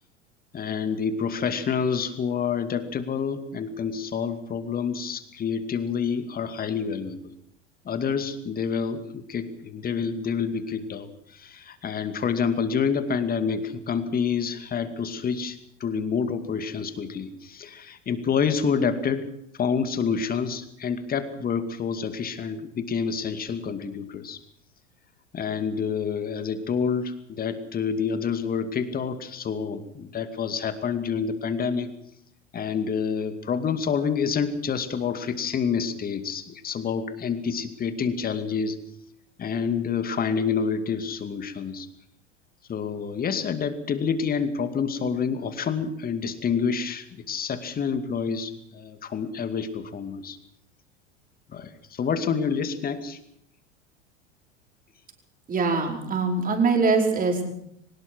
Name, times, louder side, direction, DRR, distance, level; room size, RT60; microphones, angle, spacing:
voice 1, 0.5-7.2 7.9-19.3 19.6-24.4 25.3-31.9 32.5-38.8 39.4-41.9 42.7-50.4 51.5-53.2, left 6 dB, 25° left, 10 dB, 2.4 m, -28 dB
voice 2, 55.5-57.5, right 4 dB, 25° right, 2 dB, 5.3 m, -23 dB
23.5 x 19.5 x 6.3 m, 0.70 s
figure-of-eight pair, 80°, 35 cm